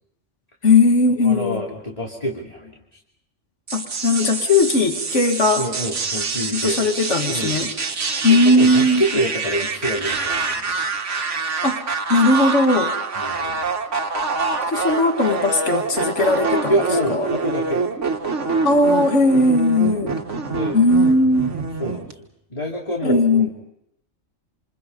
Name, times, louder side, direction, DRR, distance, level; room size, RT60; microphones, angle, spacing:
voice 1, 0.6-1.6 3.7-5.6 6.5-7.7 8.2-9.0 11.6-11.8 12.1-12.9 14.7-16.7 17.1-17.3 18.6-20.2 20.7-21.6 23.0-23.5, left 2 dB, 70° left, 5 dB, 2.3 m, -18 dB
voice 2, 1.2-2.8 5.6-6.8 7.3-10.7 13.2-13.7 16.7-17.8 19.8-20.1 20.5-20.8 21.8-22.1 22.5-23.5, equal, 30° left, -2 dB, 2.9 m, -27 dB
sound 1, 3.7-22.1, right 4 dB, 70° right, 1.9 m, -26 dB
27.5 x 27.0 x 5.4 m, 0.77 s
omnidirectional pair, 1.3 m